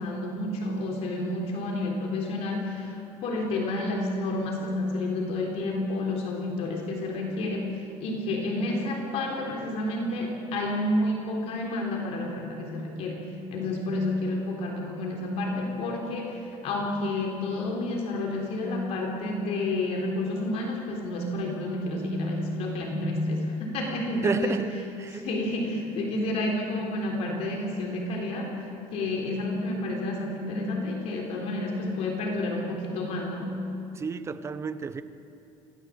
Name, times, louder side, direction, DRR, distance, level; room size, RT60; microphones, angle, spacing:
voice 1, 0.0-24.6 25.1-28.5 28.9-33.5, left 2 dB, 60° left, 1 dB, 3.6 m, -30 dB
voice 2, 24.2-25.3 33.9-35.0, right 5 dB, 25° right, 12 dB, 0.9 m, -31 dB
26.0 x 17.0 x 7.5 m, 2.6 s
cardioid pair, 150°, 12 cm